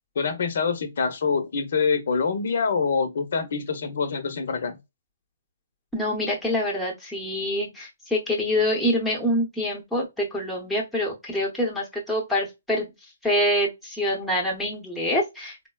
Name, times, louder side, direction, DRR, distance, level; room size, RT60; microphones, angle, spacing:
voice 1, 0.2-4.8, left 5 dB, 60° left, 0.7 m, -25 dB
voice 2, 5.9-12.9 13.2-15.7, left 1 dB, ahead, 0.9 m, -26 dB
3.8 x 2.1 x 2.3 m
hypercardioid pair, 155°, 0 cm